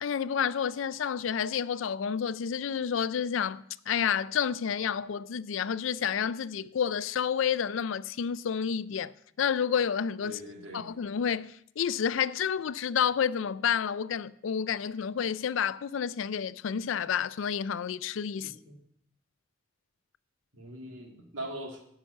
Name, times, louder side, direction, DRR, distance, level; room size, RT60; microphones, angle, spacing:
voice 1, 0.0-10.4 10.7-18.5, left 7 dB, 80° left, 0.4 m, -30 dB
voice 2, 10.2-10.8 18.4-18.8 20.5-21.8, right 1 dB, 75° right, 2.5 m, -41 dB
10.0 x 5.8 x 7.7 m
head